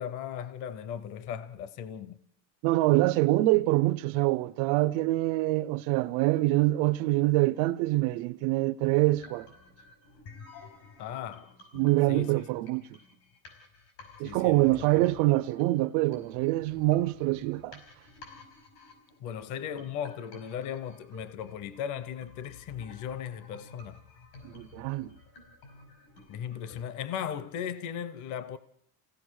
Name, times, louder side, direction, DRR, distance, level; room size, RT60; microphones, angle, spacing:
voice 1, 0.0-2.2 11.0-12.3 14.2-14.9 19.2-24.0 26.3-28.6, left 9 dB, 40° left, 0.7 m, -37 dB
voice 2, 2.6-9.5 11.7-12.8 14.2-17.8 24.4-25.1, right 18 dB, 85° right, 0.7 m, -25 dB
sound 1, 8.8-26.8, left 3 dB, 85° left, 5.8 m, -53 dB
28.5 x 17.0 x 6.3 m
cardioid pair, 180°, 46 cm